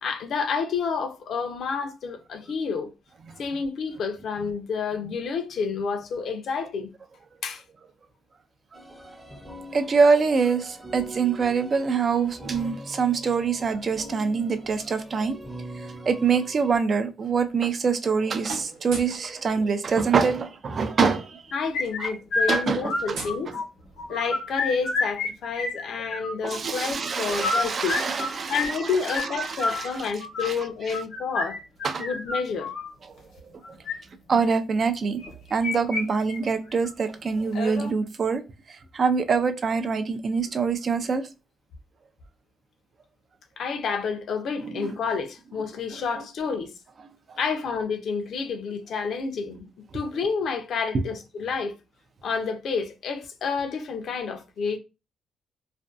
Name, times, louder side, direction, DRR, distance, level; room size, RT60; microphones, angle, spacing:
voice 1, 0.0-2.9 3.4-6.9 7.4-7.6 21.5-23.5 24.1-28.1 28.5-31.6 32.0-32.7 43.6-46.7 47.4-49.7 49.9-51.7 52.2-54.8, left 5 dB, 65° left, 0.5 m, -29 dB
sound 1, 8.7-16.8, equal, 5° right, 0.6 m, -42 dB
voice 2, 9.7-15.4 16.1-21.5 22.0-22.1 22.5-23.2 26.4-29.9 30.4-30.5 31.8-32.0 34.3-35.2 35.5-38.4 38.7-41.3 44.6-44.9 47.3-47.4, right 5 dB, 45° right, 0.4 m, -25 dB
sound 2, 17.4-18.2 18.4-19.3 20.6-20.7 21.0-21.2 21.5-24.1, right 3 dB, 85° right, 0.8 m, -41 dB
sound 3, 21.7-23.6 24.0-25.3 25.5-26.6 27.2-32.9 33.6-33.9 35.2-36.0 36.3-36.4 36.8-36.9 37.5-37.9, left 3 dB, 85° left, 0.9 m, -29 dB
2.5 x 2.2 x 2.4 m
cardioid pair, 90°, 0 cm